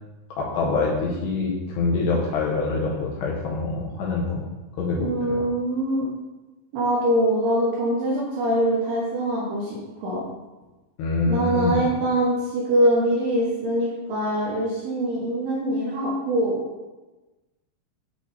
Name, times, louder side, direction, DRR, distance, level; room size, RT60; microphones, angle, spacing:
voice 1, 0.4-4.4 4.8-5.4 11.0-11.8, left 3 dB, 75° left, -3 dB, 2.6 m, -25 dB
voice 2, 5.0-6.1 6.7-10.2 11.3-16.6, right 1 dB, 70° right, -5 dB, 2.6 m, -23 dB
8.2 x 3.3 x 4.0 m, 1.1 s
omnidirectional pair, 5.5 m